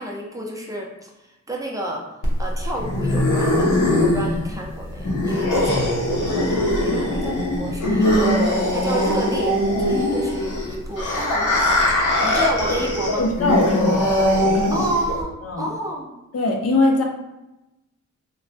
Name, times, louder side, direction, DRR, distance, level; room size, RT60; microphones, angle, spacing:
voice 1, 0.0-2.1 2.4-3.7 4.0-11.8 12.2-13.3 14.7-16.1, right 1 dB, 10° right, -2 dB, 0.5 m, -31 dB
sound 1, 2.2-15.2, left 1 dB, 80° left, 0.9 m, -21 dB
voice 2, 13.2-14.1 14.4-14.8 15.4-15.7 16.3-17.0, left 2 dB, 50° left, 2 dB, 0.6 m, -21 dB
3.2 x 2.2 x 2.6 m, 0.96 s
wide cardioid pair, 95°, 30 cm